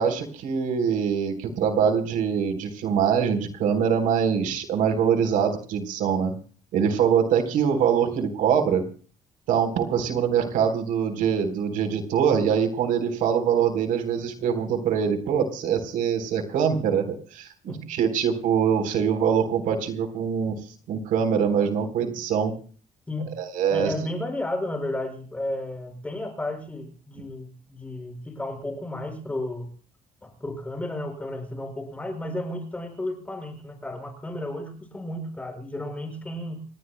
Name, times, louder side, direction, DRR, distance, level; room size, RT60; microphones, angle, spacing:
voice 1, 0.0-6.3 6.7-8.9 9.5-20.6 20.9-22.5 23.4-23.9, right 7 dB, 85° right, 6 dB, 3.8 m, -23 dB
voice 2, 23.1-23.4 23.7-29.7 30.2-36.6, left 1 dB, 10° left, 4 dB, 5.5 m, -33 dB
28.5 x 20.5 x 2.2 m, 0.41 s
cardioid pair, 170°, 14 cm